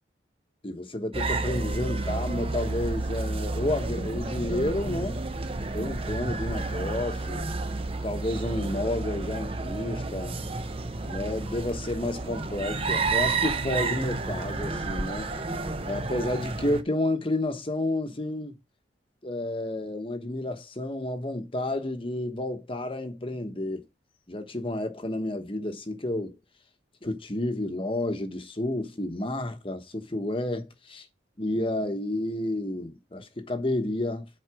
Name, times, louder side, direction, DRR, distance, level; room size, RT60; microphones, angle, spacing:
voice 1, 0.6-5.2 5.7-7.5 8.0-10.4 11.0-15.3 15.8-18.5 19.2-23.8 24.3-26.4 27.0-31.1 31.4-34.3, left 1 dB, 30° left, 1.1 m, -30 dB
sound 1, 1.1-16.8, right 3 dB, 30° right, 0.7 m, -31 dB
7.6 x 4.7 x 4.8 m
head